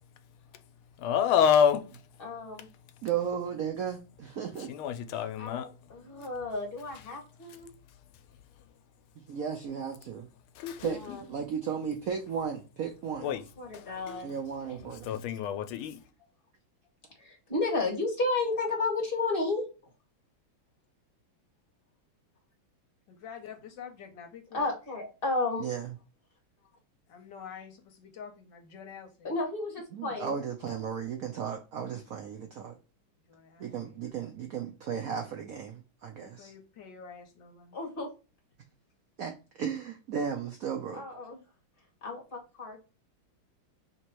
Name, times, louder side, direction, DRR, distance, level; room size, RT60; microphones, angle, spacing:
voice 1, 1.0-1.8 4.7-5.7 10.6-11.2 13.2-13.4 13.7-14.2 15.0-16.0, left 8 dB, 85° left, 1.4 m, -27 dB
voice 2, 2.2-2.7 5.4-7.7 10.9-11.2 13.6-14.3 17.2-19.7 24.5-25.7 29.2-30.4 37.7-38.1 40.9-41.4 42.0-42.8, left 3 dB, 30° left, 1.4 m, -32 dB
voice 3, 3.0-4.7 9.3-10.3 10.8-11.0 11.3-13.3 14.2-15.1 25.6-25.9 29.9-32.7 33.6-36.5 39.2-41.0, right 7 dB, 75° right, 0.8 m, -35 dB
voice 4, 23.1-24.7 27.1-29.3 33.3-34.0 36.1-37.8, left 7 dB, 65° left, 1.4 m, -47 dB
3.5 x 3.0 x 4.4 m
omnidirectional pair, 2.2 m